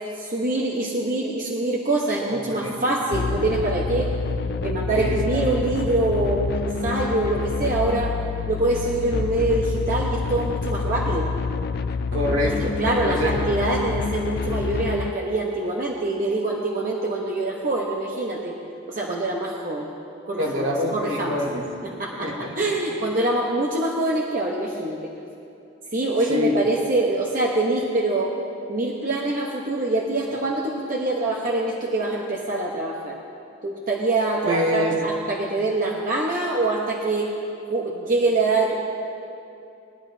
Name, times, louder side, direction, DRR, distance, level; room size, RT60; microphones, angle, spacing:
voice 1, 0.2-4.1 4.6-8.1 8.5-11.3 12.8-18.5 18.9-19.9 20.3-21.4 21.8-25.1 25.9-28.3 28.7-33.2 33.6-37.3 37.7-38.8, right 2 dB, 40° right, -3 dB, 1.0 m, -24 dB
voice 2, 2.3-2.8 4.9-5.5 12.1-13.3 20.4-21.9 22.2-22.5 26.3-26.6 34.5-35.0, left 1 dB, 70° right, -2 dB, 1.9 m, -26 dB
sound 1, 3.1-15.1, left 5 dB, 50° left, 0.3 m, -27 dB
21.0 x 11.5 x 2.7 m, 2.7 s
head